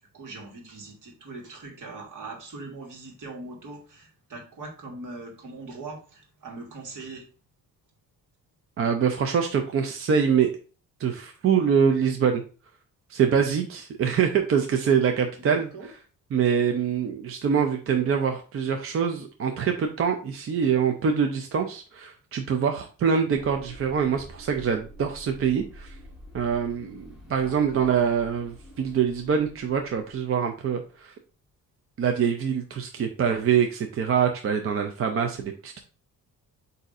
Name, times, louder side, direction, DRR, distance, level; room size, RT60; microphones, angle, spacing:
voice 1, 0.1-7.2 15.5-15.9 27.2-28.0, right 3 dB, 60° right, 2 dB, 1.6 m, -41 dB
voice 2, 8.8-10.5 11.0-12.4 13.1-15.7 16.3-26.0 26.3-31.1 32.0-35.8, right 7 dB, 40° right, 5 dB, 0.4 m, -24 dB
sound 1, 23.3-30.7, equal, ahead, 1.9 m, -48 dB
7.9 x 2.7 x 2.5 m, 0.37 s
cardioid pair, 150°, 35 cm